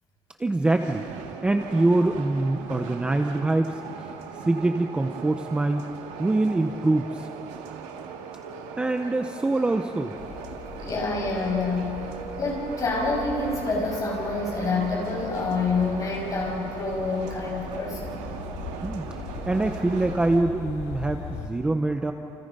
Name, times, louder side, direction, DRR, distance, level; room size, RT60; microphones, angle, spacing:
voice 1, 0.4-1.1 1.4-4.1 4.5-5.8 6.2-7.3 8.8-10.1 18.8-22.1, right 2 dB, 10° right, 5 dB, 0.7 m, -24 dB
sound 1, 0.7-20.4, right 7 dB, 85° right, 2.1 m, -39 dB
sound 2, 10.1-21.5, left 5 dB, 75° left, 3.2 m, -40 dB
voice 2, 10.7-12.1 12.4-18.2, left 3 dB, 30° left, -2 dB, 6.4 m, -27 dB
29.0 x 28.5 x 5.4 m, 2.9 s
cardioid pair, 170°, 12 cm